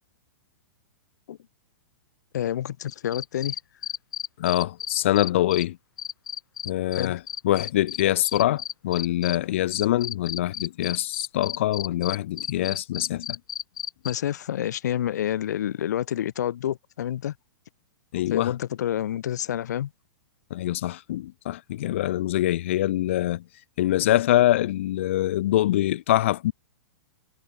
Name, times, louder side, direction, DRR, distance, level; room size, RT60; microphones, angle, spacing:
voice 1, 2.3-3.6 6.9-7.2 14.0-17.3 18.3-19.9, left 11 dB, 55° left, 2.4 m, -28 dB
sound 1, 2.9-5.6 6.0-9.4 9.7-14.1, left 9 dB, 75° left, 2.4 m, -33 dB
voice 2, 4.4-5.8 6.7-13.4 18.1-18.5 20.5-23.4 23.8-26.5, left 14 dB, 35° left, 0.4 m, -24 dB
hypercardioid pair, 180°, 11 cm